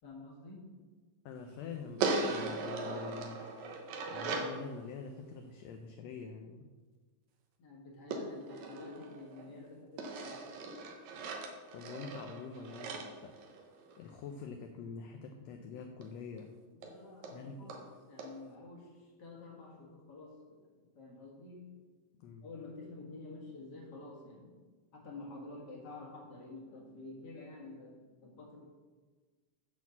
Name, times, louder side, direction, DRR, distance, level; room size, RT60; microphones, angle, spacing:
voice 1, 0.0-0.8 7.6-10.4 16.7-21.8 22.4-24.6 24.9-28.6, left 3 dB, 40° left, -2 dB, 1.9 m, -50 dB
voice 2, 1.2-3.4 4.1-6.7 11.7-13.4 14.0-16.5 17.3-17.7 22.2-22.4, left 5 dB, 75° left, 4 dB, 1.6 m, -45 dB
sound 1, 2.0-4.6 8.1-9.5 10.0-14.1 16.0-16.1 16.4-16.5 16.8-16.9 17.2-17.3 17.7-17.8 18.2-18.3, right 3 dB, 75° right, 2.3 m, -38 dB
8.2 x 4.4 x 7.1 m, 1.4 s
omnidirectional pair, 3.5 m